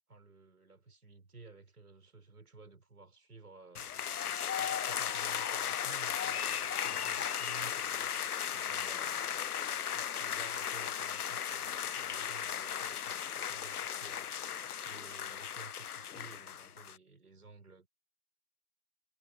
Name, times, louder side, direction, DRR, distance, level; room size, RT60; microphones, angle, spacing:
voice 1, 0.1-3.9 4.6-9.2 9.9-14.3 14.8-17.9, right 3 dB, 80° right, 6.0 m, -54 dB
sound 1, 3.7-17.0, left 9 dB, 85° left, 0.7 m, -36 dB
figure-of-eight pair, 145°, 44 cm